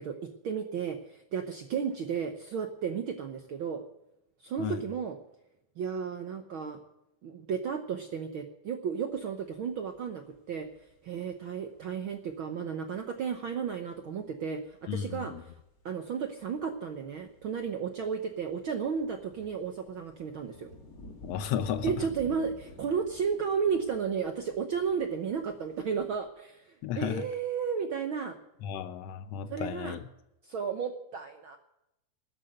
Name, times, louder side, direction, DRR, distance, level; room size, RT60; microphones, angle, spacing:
voice 1, 0.0-3.8 4.4-5.2 5.8-6.8 7.2-10.7 11.0-15.5 15.8-20.7 21.8-28.4 29.5-30.0 30.4-31.6, right 6 dB, 65° right, 5 dB, 1.2 m, -33 dB
sound 1, 9.1-9.2 9.5-10.0 10.4-12.4 13.0-13.1 13.3-13.4 13.7-13.8 14.4-15.2 15.5-26.2, left 1 dB, 30° left, 2.3 m, -51 dB
voice 2, 14.9-15.4 21.2-22.1 26.8-27.2 28.6-30.0, left 9 dB, 70° left, 10 dB, 1.6 m, -34 dB
13.0 x 10.0 x 8.0 m, 0.85 s
omnidirectional pair, 3.6 m